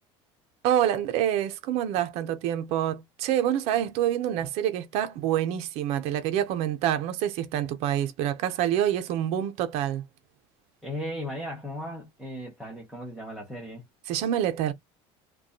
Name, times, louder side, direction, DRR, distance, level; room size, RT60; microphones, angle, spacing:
voice 1, 0.6-10.0 14.1-14.7, right 11 dB, 55° right, 0.6 m, -27 dB
voice 2, 10.8-13.8, equal, ahead, 0.8 m, -36 dB
2.6 x 2.3 x 2.4 m
cardioid pair, 160°, 13 cm